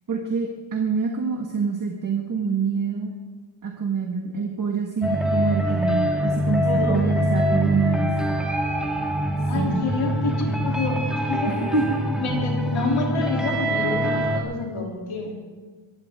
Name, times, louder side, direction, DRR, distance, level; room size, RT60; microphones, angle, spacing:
voice 1, 0.1-3.1 3.6-8.1 9.5-9.8 11.5-12.0, right 5 dB, 40° right, 1 dB, 1.5 m, -26 dB
sound 1, 5.0-14.4, equal, ahead, 1.9 m, -24 dB
voice 2, 6.6-7.0 9.4-11.7 12.2-15.3, left 3 dB, 90° left, -1 dB, 3.2 m, -28 dB
23.0 x 15.5 x 3.6 m, 1.3 s
wide cardioid pair, 180°, 48 cm